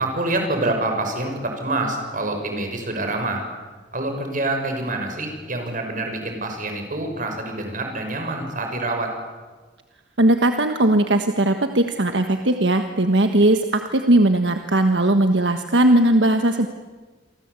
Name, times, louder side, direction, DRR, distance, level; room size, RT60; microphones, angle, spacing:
voice 1, 0.0-3.5 3.9-9.1, right 2 dB, 50° right, 4 dB, 6.5 m, -26 dB
voice 2, 10.2-16.7, right 1 dB, 75° right, 6 dB, 1.5 m, -18 dB
28.5 x 24.5 x 8.3 m, 1.3 s
head